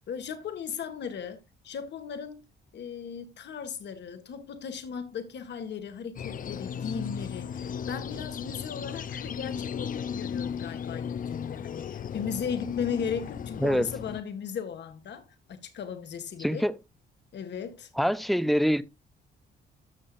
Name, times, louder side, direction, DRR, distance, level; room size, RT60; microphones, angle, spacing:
voice 1, 0.1-2.4 2.7-16.7 17.3-17.9, left 7 dB, 60° left, 1.8 m, -37 dB
sound 1, 6.2-14.2, left 7 dB, 45° left, 0.5 m, -36 dB
voice 2, 16.4-16.8 18.0-18.8, equal, ahead, 0.6 m, -24 dB
13.5 x 6.4 x 2.5 m
cardioid pair, 90°, 20 cm